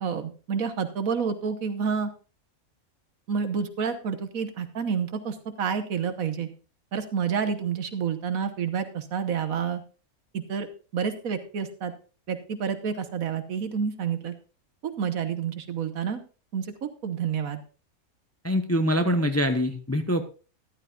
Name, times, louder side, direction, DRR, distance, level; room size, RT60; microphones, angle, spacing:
voice 1, 0.0-2.1 3.3-6.5 6.9-9.8 10.5-10.7 10.9-11.9 12.3-14.3 14.8-16.2 16.5-17.6, right 6 dB, 75° right, 9 dB, 1.5 m, -29 dB
voice 2, 18.4-20.3, equal, 15° left, 7 dB, 0.6 m, -24 dB
14.0 x 11.5 x 2.4 m, 0.35 s
omnidirectional pair, 1.5 m